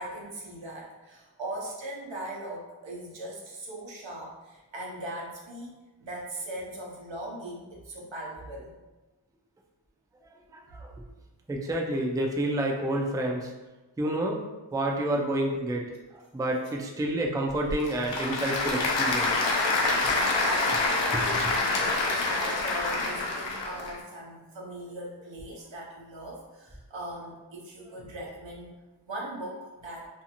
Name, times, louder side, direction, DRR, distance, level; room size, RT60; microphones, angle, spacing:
voice 1, 0.0-8.8 20.1-28.7 29.1-30.1, right 1 dB, 85° right, -3 dB, 0.8 m, -40 dB
voice 2, 10.5-10.9 11.5-13.5 14.0-14.4 14.7-15.9 16.3-19.5 21.1-21.2, right 1 dB, 10° right, 0 dB, 0.3 m, -29 dB
Applause / Crowd, 17.5-24.0, left 3 dB, 75° left, 0.6 m, -26 dB
2.6 x 2.4 x 2.8 m, 1.1 s
wide cardioid pair, 55°, 44 cm